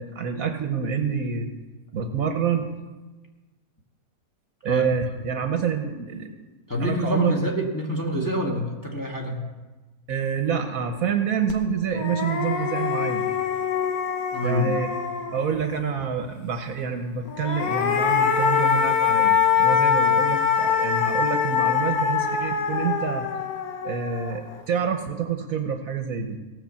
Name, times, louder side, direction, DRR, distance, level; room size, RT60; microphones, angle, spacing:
voice 1, 0.0-1.5 1.9-2.7 4.6-6.3 6.8-7.4 10.1-13.3 14.4-14.9 15.3-23.3 23.8-26.4, right 7 dB, 60° right, 5 dB, 1.3 m, -27 dB
voice 2, 6.7-9.5 14.3-14.8, equal, 10° left, -2 dB, 1.5 m, -27 dB
sound 1, 11.5-11.6 11.9-15.6 17.3-24.5, left 7 dB, 65° left, 1.5 m, -23 dB
17.5 x 5.8 x 7.0 m, 1.2 s
omnidirectional pair, 1.7 m